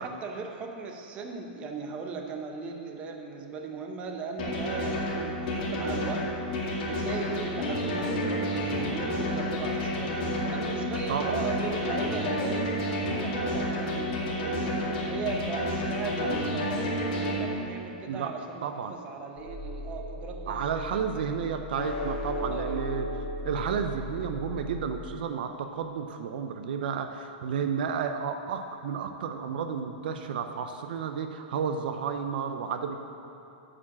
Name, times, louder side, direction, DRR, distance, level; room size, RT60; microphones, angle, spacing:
voice 1, 0.0-6.2 6.8-14.8 15.1-21.4 22.5-22.8, right 4 dB, 20° right, 3 dB, 0.7 m, -38 dB
sound 1, 4.4-17.4, equal, 45° left, 2.2 m, -30 dB
voice 2, 11.1-11.4 18.1-18.3 18.6-18.9 20.5-33.0, right 6 dB, 65° right, 6 dB, 0.5 m, -32 dB
sound 2, 19.4-25.1, equal, 25° left, 1.8 m, -36 dB
8.4 x 5.0 x 7.4 m, 2.9 s
supercardioid pair, 160°, 5 cm